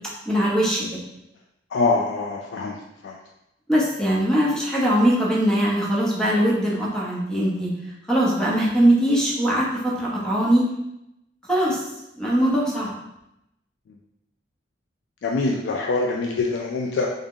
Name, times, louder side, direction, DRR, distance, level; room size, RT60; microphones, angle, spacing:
voice 1, 0.3-0.8 3.7-7.7 8.1-10.7 11.5-11.8 12.2-12.9, equal, 5° left, -5 dB, 0.7 m, -21 dB
voice 2, 1.7-2.8 3.0-3.1 15.2-17.1, left 3 dB, 70° left, 0 dB, 0.3 m, -24 dB
3.5 x 2.0 x 3.6 m, 0.87 s
head